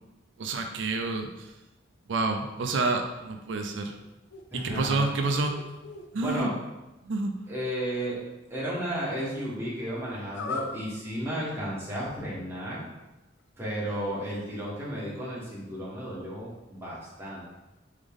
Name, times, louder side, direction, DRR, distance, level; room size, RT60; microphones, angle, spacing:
voice 1, 0.4-1.5 2.1-3.9 4.6-5.6 6.1-6.5 7.0-7.3, right 3 dB, 75° right, 5 dB, 0.4 m, -28 dB
sound 1, 4.0-4.9 5.2-6.1 10.3-10.8, left 4 dB, 75° left, 0.5 m, -38 dB
voice 2, 4.5-5.1 6.1-6.5 7.5-8.2 8.5-12.9 13.6-17.4, equal, 15° right, -7 dB, 1.3 m, -33 dB
3.6 x 3.6 x 3.5 m, 1.0 s
head